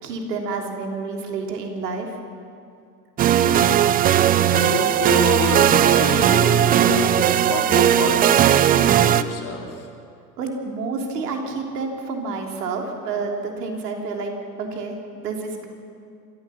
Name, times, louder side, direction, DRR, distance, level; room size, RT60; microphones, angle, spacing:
voice 1, 0.0-2.2 10.4-14.3 14.6-15.7, right 4 dB, 70° right, 2 dB, 3.4 m, -29 dB
sound 1, 3.2-9.2, right 10 dB, 20° right, 0.5 m, -17 dB
voice 2, 3.4-3.9 4.5-9.9, left 5 dB, 40° left, 1 dB, 3.6 m, -28 dB
26.5 x 14.0 x 7.2 m, 2.4 s
hypercardioid pair, 85°, 49 cm